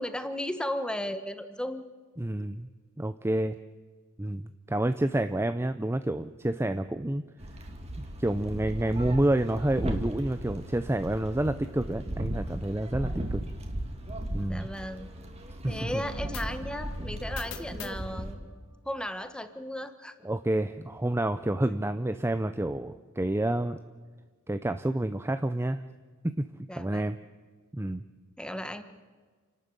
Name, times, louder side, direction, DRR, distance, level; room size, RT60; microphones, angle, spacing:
voice 1, 0.0-1.9 14.5-15.1 15.7-18.4 18.8-20.1 21.6-21.7 26.7-27.0 28.4-28.8, left 1 dB, 5° left, 9 dB, 1.3 m, -35 dB
voice 2, 2.2-2.7 3.0-3.6 4.2-7.2 8.0-13.4 14.3-14.7 15.6-16.0 20.2-23.8 24.5-25.8 26.2-26.5 26.8-27.2 27.7-28.0, right 1 dB, 10° right, 10 dB, 0.5 m, -29 dB
sound 1, 7.4-18.3, right 1 dB, 30° right, 2.4 m, -36 dB
sound 2, 15.6-19.2, left 5 dB, 70° left, 1.8 m, -45 dB
28.5 x 12.5 x 9.1 m, 1.4 s
head